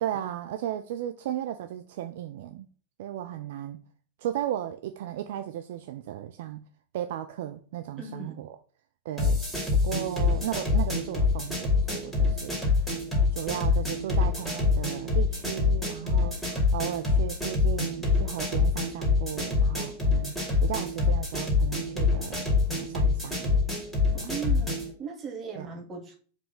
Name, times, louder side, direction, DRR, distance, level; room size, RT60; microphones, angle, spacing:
voice 1, 0.0-2.7 3.0-3.8 4.2-6.6 6.9-8.6 9.0-9.4 9.7-12.6 13.3-23.6 24.2-24.3 25.5-25.7, right 11 dB, 55° right, 0.4 m, -35 dB
voice 2, 8.0-8.4 24.1-26.2, right 5 dB, 25° right, 1.6 m, -38 dB
sound 1, 9.2-24.9, left 4 dB, 5° left, 2.5 m, -26 dB
4.9 x 3.7 x 5.2 m
figure-of-eight pair, 90°, 0 cm